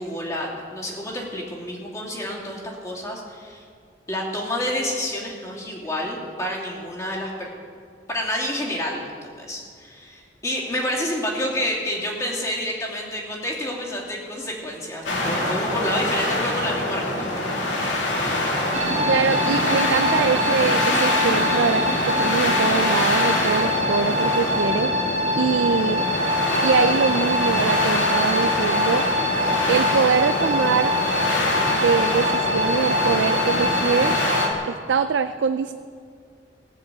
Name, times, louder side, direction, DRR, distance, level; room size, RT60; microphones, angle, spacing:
voice 1, 0.0-3.6 4.1-7.5 8.1-17.5, left 1 dB, 20° left, -4 dB, 2.7 m, -29 dB
sound 1, 15.0-34.5, left 1 dB, 85° left, 2.4 m, -24 dB
sound 2, 18.7-34.5, left 1 dB, 35° right, 1.3 m, -25 dB
voice 2, 19.1-25.1 25.4-26.0 26.6-29.1 29.7-31.0 31.7-34.2 34.7-35.7, right 5 dB, 75° right, 10 dB, 0.4 m, -23 dB
18.0 x 6.7 x 8.2 m, 2.1 s
head